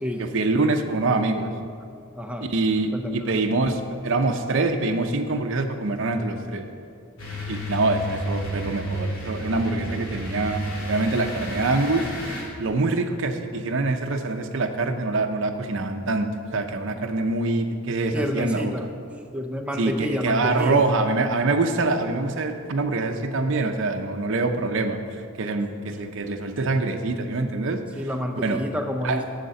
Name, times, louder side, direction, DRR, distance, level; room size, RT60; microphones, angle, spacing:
voice 1, 0.2-1.5 2.5-6.6 7.5-10.6 10.9-18.7 19.8-28.1 28.4-28.6 29.0-29.2, right 3 dB, 60° right, 4 dB, 0.6 m, -25 dB
voice 2, 2.1-2.5 2.9-3.2 18.1-18.9 19.3-20.8 28.0-29.2, equal, 5° right, 4 dB, 0.5 m, -29 dB
sound 1, 7.2-12.4, equal, 70° left, 2.2 m, -31 dB
6.8 x 6.5 x 7.7 m, 2.3 s
head